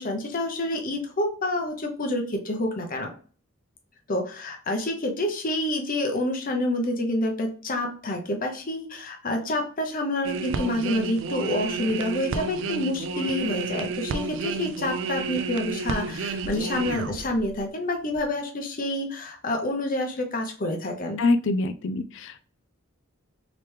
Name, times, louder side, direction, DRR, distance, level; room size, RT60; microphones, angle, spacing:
voice 1, 0.0-3.1 4.1-21.2, left 1 dB, 40° left, 3 dB, 0.8 m, -28 dB
sound 1, 10.2-17.7 18.1-18.3, right 4 dB, 60° right, 0.4 m, -31 dB
voice 2, 21.2-22.4, left 3 dB, 60° left, 12 dB, 0.3 m, -25 dB
3.3 x 3.0 x 3.2 m, 0.42 s
head